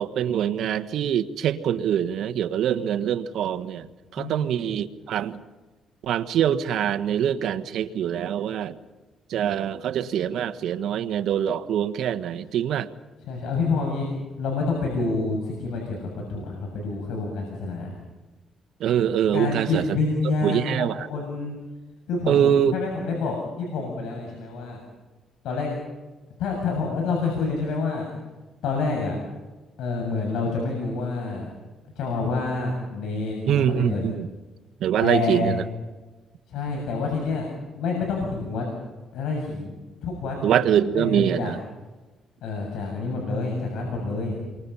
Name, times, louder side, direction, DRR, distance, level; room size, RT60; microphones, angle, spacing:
voice 1, 0.0-3.9 4.1-5.4 6.0-8.8 9.3-12.9 18.8-19.8 20.4-21.1 22.3-22.7 33.5-34.3 34.8-35.6 40.4-41.6, right 9 dB, 75° right, 9 dB, 1.5 m, -24 dB
voice 2, 4.2-4.6 13.3-14.1 14.4-16.0 16.3-17.9 19.3-21.5 22.1-22.5 22.7-24.8 25.4-25.7 26.4-28.1 28.6-29.2 29.8-31.5 32.0-34.1 35.0-35.5 36.5-37.5 37.7-38.7 39.1-39.8 40.0-40.4 40.9-41.5 42.4-44.4, left 4 dB, 85° left, 1 dB, 7.0 m, -27 dB
29.5 x 24.5 x 5.7 m, 1.2 s
cardioid pair, 90°, 0 cm